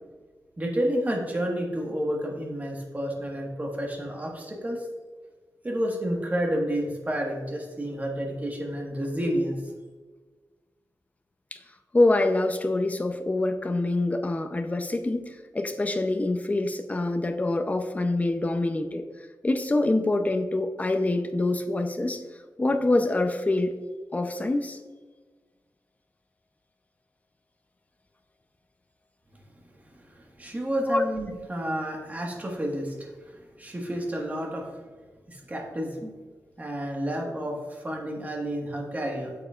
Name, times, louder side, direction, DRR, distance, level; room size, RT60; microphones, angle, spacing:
voice 1, 0.6-4.9 5.6-9.6 29.8-34.7 35.3-36.1 36.6-39.3, equal, 25° right, 0 dB, 1.5 m, -30 dB
voice 2, 11.9-19.0 19.4-22.2 22.6-23.7 24.1-24.8 30.9-31.0, left 2 dB, 25° left, 7 dB, 0.6 m, -25 dB
9.3 x 7.1 x 2.4 m, 1.4 s
wide cardioid pair, 145°, 6 cm